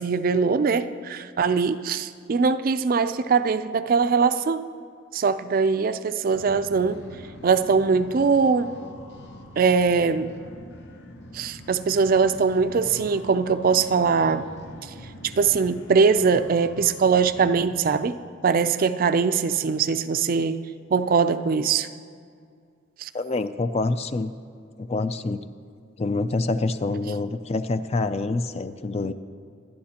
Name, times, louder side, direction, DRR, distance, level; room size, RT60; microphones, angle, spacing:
voice 1, 0.0-4.7 5.1-7.0 7.4-8.7 9.6-10.3 11.3-14.5 15.2-18.2 18.4-20.6 20.9-21.9 23.0-23.1, right 5 dB, 50° right, 11 dB, 0.4 m, -21 dB
sound 1, 6.3-17.8, left 1 dB, 60° left, 1.0 m, -44 dB
voice 2, 23.1-24.3 24.8-25.4 26.0-29.1, left 3 dB, 35° left, 12 dB, 0.4 m, -26 dB
24.0 x 10.5 x 2.9 m, 2.2 s
head